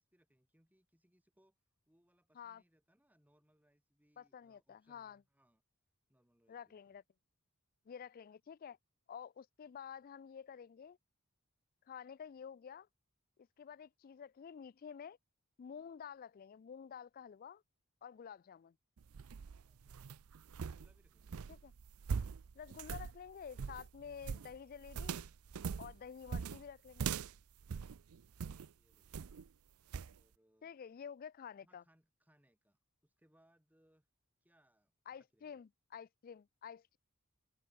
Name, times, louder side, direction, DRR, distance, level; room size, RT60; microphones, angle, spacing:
voice 1, 0.0-1.5 1.9-5.6 6.1-7.0 19.5-20.2 20.5-21.5 28.3-29.3 30.1-30.7 31.6-34.1 34.4-35.6, equal, 10° right, 5.5 m, -74 dB
voice 2, 4.2-5.2 6.5-7.0 7.9-8.8 9.1-11.0 11.9-12.9 13.6-15.2 15.6-17.6 18.0-18.8 21.5-21.7 22.5-25.2 25.8-27.2 30.6-31.8 35.1-37.0, left 7 dB, 40° left, 0.3 m, -50 dB
sound 1, 19.0-28.7 29.1-29.5 29.9-30.2, right 6 dB, 90° right, 0.5 m, -42 dB
open air
head